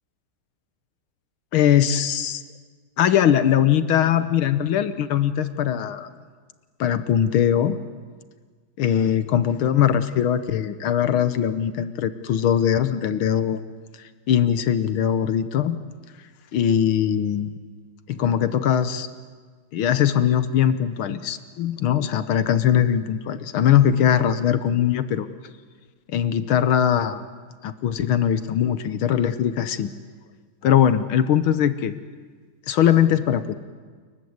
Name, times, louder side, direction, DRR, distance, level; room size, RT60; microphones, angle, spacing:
voice 1, 1.5-2.4 3.0-6.1 6.8-7.8 8.8-13.6 14.3-15.8 16.5-17.6 18.1-19.1 19.7-25.3 26.1-27.2 27.6-29.9 30.6-31.9 32.7-33.5, left 9 dB, 75° left, 12 dB, 1.8 m, -21 dB
29.0 x 22.5 x 8.0 m, 1.5 s
omnidirectional pair, 2.3 m